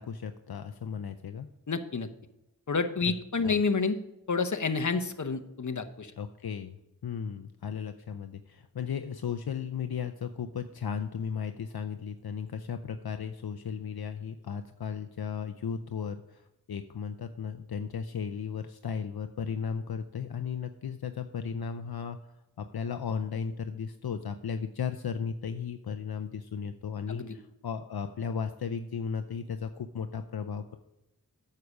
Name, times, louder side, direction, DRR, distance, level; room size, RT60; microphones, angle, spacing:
voice 1, 0.0-1.5 3.4-3.6 6.2-6.8 7.0-16.4 16.7-22.2 22.6-30.8, left 6 dB, 70° left, 8 dB, 0.6 m, -35 dB
voice 2, 1.7-2.1 2.7-4.0 4.3-6.1 27.1-27.4, left 4 dB, 50° left, 9 dB, 0.9 m, -29 dB
9.5 x 6.7 x 4.9 m, 0.90 s
wide cardioid pair, 65°, 38 cm